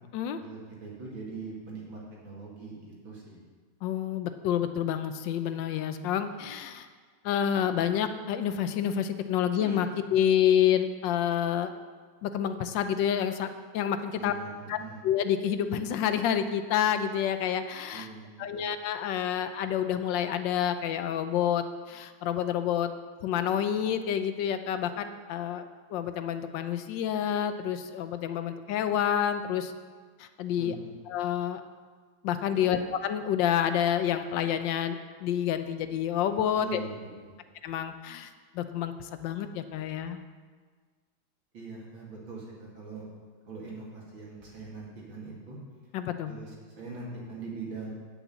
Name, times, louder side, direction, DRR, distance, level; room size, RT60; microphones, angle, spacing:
voice 1, 0.4-3.4 9.6-9.9 14.2-15.0 17.9-18.7 30.5-31.0 32.5-32.8 36.6-37.4 41.5-43.0 43.5-45.6 46.3-47.9, right 4 dB, 80° right, -4 dB, 3.0 m, -42 dB
voice 2, 3.8-6.9 7.2-11.7 12.2-13.5 13.7-14.3 14.7-14.8 15.0-18.1 18.4-22.9 23.2-25.6 25.9-29.7 30.2-30.7 31.1-31.6 32.2-36.8 37.6-38.3 38.5-40.2 45.9-46.3, left 9 dB, 75° left, 9 dB, 1.3 m, -28 dB
8.6 x 6.0 x 8.1 m, 1.5 s
omnidirectional pair, 2.2 m